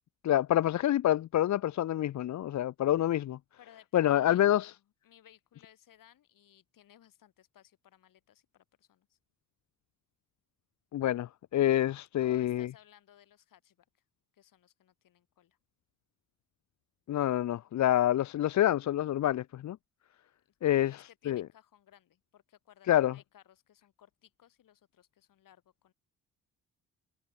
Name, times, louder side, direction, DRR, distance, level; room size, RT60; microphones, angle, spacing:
voice 1, 0.2-3.4 3.9-4.7 10.9-12.7 17.1-19.8 20.6-20.9 21.3-21.4 22.9-23.1, left 12 dB, 55° left, 0.7 m, -27 dB
voice 2, 3.6-9.2 12.2-14.0 14.3-15.6 20.4-25.9, left 11 dB, 70° left, 7.2 m, -60 dB
cardioid pair, 75°, 34 cm